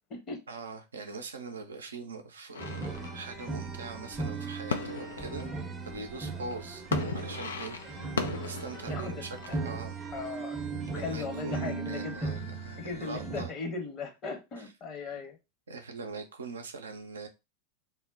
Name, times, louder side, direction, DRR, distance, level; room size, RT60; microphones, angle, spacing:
voice 1, 0.5-5.5 5.8-6.9 7.1-10.0 10.9-13.5 14.6-14.7 15.1-15.2 15.7-17.3, right 4 dB, 75° right, 0.5 m, -42 dB
sound 1, 2.5-9.6, left 5 dB, 70° left, 0.3 m, -38 dB
sound 2, 2.6-13.5, right 3 dB, 20° right, 0.6 m, -37 dB
voice 2, 8.9-9.6 10.1-10.6 10.9-12.3 12.8-15.4, left 4 dB, 35° left, 0.9 m, -38 dB
2.2 x 2.1 x 3.7 m
figure-of-eight pair, 85°, 0 cm